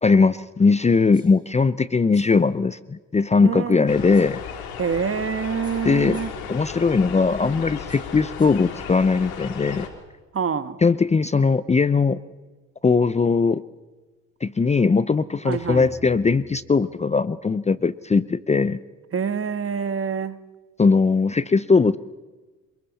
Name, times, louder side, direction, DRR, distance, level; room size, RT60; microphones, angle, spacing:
voice 1, 0.0-4.4 5.8-6.2 6.5-9.9 10.8-12.2 12.8-13.6 14.4-18.8 20.8-22.0, left 4 dB, 20° left, 0.7 m, -19 dB
sound 1, 1.1-1.5 2.1-2.5 4.1-4.5 5.6-6.5 7.9-8.7, right 1 dB, 10° right, 5.1 m, -54 dB
voice 2, 3.4-4.0 4.8-6.3 10.3-10.8 15.4-15.9 19.1-20.4, right 6 dB, 35° right, 1.6 m, -26 dB
sound 2, 3.9-9.9, left 7 dB, 75° left, 3.5 m, -35 dB
sound 3, 15.5-17.8, right 5 dB, 75° right, 4.6 m, -47 dB
28.5 x 21.5 x 4.3 m
supercardioid pair, 65°, 37 cm